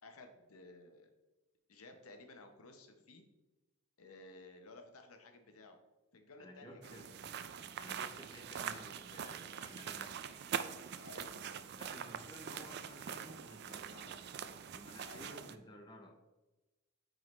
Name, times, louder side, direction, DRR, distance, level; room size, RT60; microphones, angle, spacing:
voice 1, 0.0-1.1 1.7-3.2 4.0-5.8 6.1-7.4 11.0-11.4 15.0-15.4, left 2 dB, 75° left, 5 dB, 0.9 m, -55 dB
voice 2, 6.4-7.1 7.8-10.3 11.8-14.3 14.7-16.1, equal, 20° left, 2 dB, 0.6 m, -54 dB
sound 1, 6.8-15.5, right 8 dB, 45° right, 0.3 m, -44 dB
9.2 x 3.8 x 3.2 m, 1.1 s
head